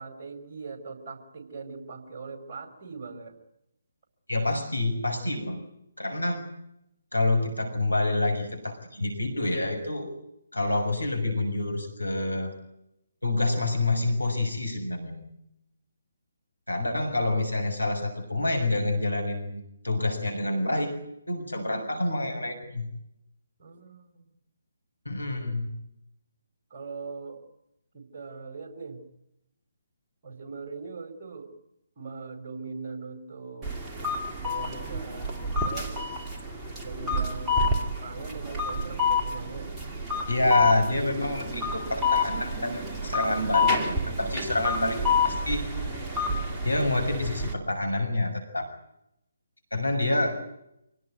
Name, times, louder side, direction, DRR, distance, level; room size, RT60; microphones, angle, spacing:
voice 1, 0.0-3.3 23.6-24.3 26.7-27.4 27.9-29.0 30.2-31.5 32.0-33.7 34.4-36.0 36.8-39.7 44.4-44.6, right 4 dB, 35° right, 5 dB, 5.2 m, -41 dB
voice 2, 4.3-5.6 6.0-6.4 7.1-10.1 10.5-12.5 13.2-15.3 16.7-20.9 21.3-22.9 25.0-25.7 40.3-45.7 46.6-48.7 49.7-50.5, left 2 dB, 80° left, 5 dB, 6.6 m, -27 dB
sound 1, 33.6-47.5, left 3 dB, 10° right, 2.8 m, -29 dB
26.5 x 18.0 x 9.4 m, 0.82 s
figure-of-eight pair, 140°, 0 cm